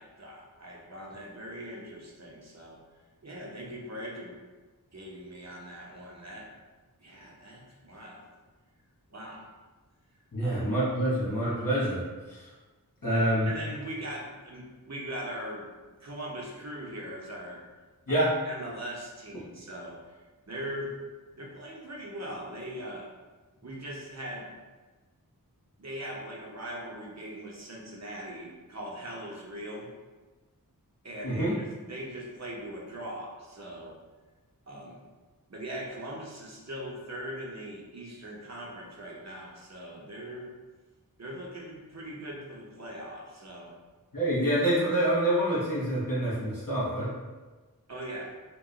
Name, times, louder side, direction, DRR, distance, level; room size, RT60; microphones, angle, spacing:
voice 1, 0.0-2.8 3.2-4.4 4.9-6.5 7.0-8.3 9.1-9.5 10.4-10.7 13.1-15.7 16.0-17.6 18.1-20.0 20.5-20.9 21.4-23.1 23.6-24.5 25.8-29.9 31.0-34.0 34.7-35.0 35.5-40.5 41.2-43.7 47.9-48.3, equal, 45° right, -2 dB, 0.7 m, -40 dB
voice 2, 10.3-12.0 12.3-12.5 13.0-13.5 18.1-18.3 31.2-31.6 44.1-47.1, right 1 dB, 65° left, -9 dB, 1.0 m, -26 dB
2.9 x 2.1 x 3.8 m, 1.3 s
wide cardioid pair, 50°, 37 cm